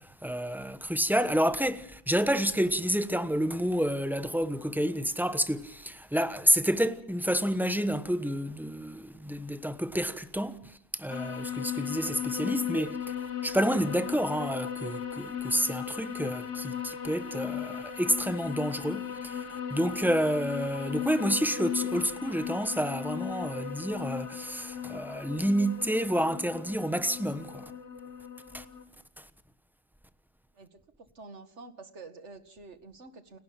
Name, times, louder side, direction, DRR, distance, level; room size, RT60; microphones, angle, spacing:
voice 1, 0.0-27.6 28.5-28.6 29.2-29.3, equal, ahead, 1.0 m, -29 dB
sound 1, 11.1-28.8, left 9 dB, 70° left, 1.8 m, -37 dB
voice 2, 31.2-33.4, right 3 dB, 65° right, 2.2 m, -48 dB
29.5 x 12.0 x 8.8 m
omnidirectional pair, 1.3 m